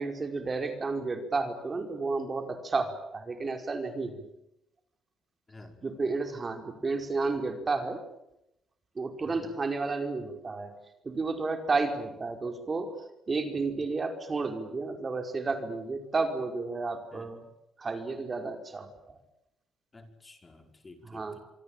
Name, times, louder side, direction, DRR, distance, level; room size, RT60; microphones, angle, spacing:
voice 1, 0.0-4.2 5.8-8.0 8.9-10.7 11.0-12.9 13.3-17.4 17.8-19.2 21.0-21.4, right 3 dB, 35° right, 6 dB, 5.0 m, -32 dB
voice 2, 5.5-5.8 9.2-9.5 17.1-17.3 19.9-21.4, left 2 dB, 25° left, 6 dB, 5.1 m, -51 dB
26.5 x 23.5 x 9.1 m, 0.85 s
cardioid pair, 90°, 0 cm